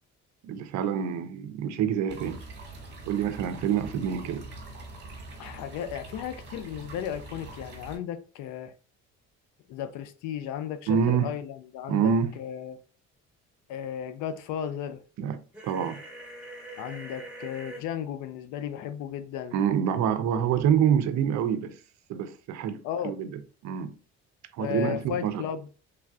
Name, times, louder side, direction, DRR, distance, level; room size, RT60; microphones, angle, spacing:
voice 1, 0.4-2.4 3.0-4.4 10.9-11.4 11.9-12.3 15.2-16.0 19.5-21.8 22.1-23.3 23.6-24.0 24.6-25.4, right 8 dB, 70° right, 0.5 m, -26 dB
sound 1, 2.1-8.0, right 2 dB, 40° right, 1.3 m, -44 dB
voice 2, 5.4-8.7 9.7-12.8 13.7-15.0 16.8-19.6 22.8-23.2 24.6-25.7, left 9 dB, 90° left, 0.5 m, -35 dB
sound 2, 15.5-17.8, right 1 dB, 5° right, 1.2 m, -43 dB
3.3 x 2.4 x 2.3 m
cardioid pair, 120°, 30 cm